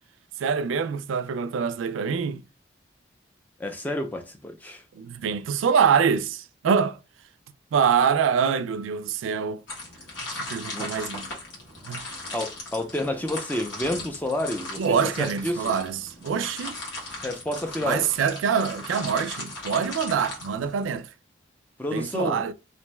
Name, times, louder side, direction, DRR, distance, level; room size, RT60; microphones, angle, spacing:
voice 1, 0.4-2.4 4.9-7.0 7.7-9.6 10.4-11.3 11.8-12.1 14.8-16.8 17.8-21.1 21.9-22.5, right 6 dB, 85° right, 0.3 m, -25 dB
voice 2, 3.6-4.8 10.7-10.9 12.3-15.7 17.2-18.1 21.8-22.5, left 1 dB, 10° left, 0.4 m, -30 dB
sound 1, 9.7-21.0, left 2 dB, 80° left, 1.2 m, -38 dB
2.6 x 2.2 x 3.0 m
head